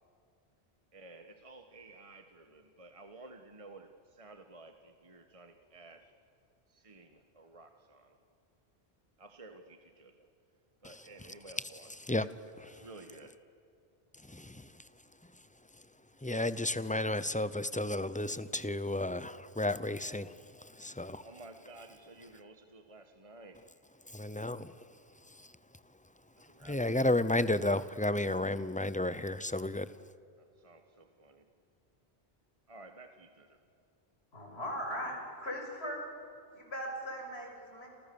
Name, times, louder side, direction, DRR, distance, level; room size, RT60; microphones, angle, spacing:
voice 1, 0.9-6.1 6.7-8.2 9.2-10.3 10.8-11.9 12.2-12.3 12.7-13.4 21.2-23.7 26.4-27.0 30.4-31.4 32.7-33.6, right 2 dB, 30° right, 6 dB, 1.4 m, -53 dB
voice 2, 14.3-14.8 16.2-21.3 24.1-24.8 25.3-25.5 26.6-29.9, left 2 dB, 10° left, 14 dB, 0.6 m, -32 dB
voice 3, 34.3-36.0 36.5-37.9, equal, 75° left, 1 dB, 6.5 m, -39 dB
29.5 x 27.5 x 7.1 m, 2.5 s
omnidirectional pair, 1.1 m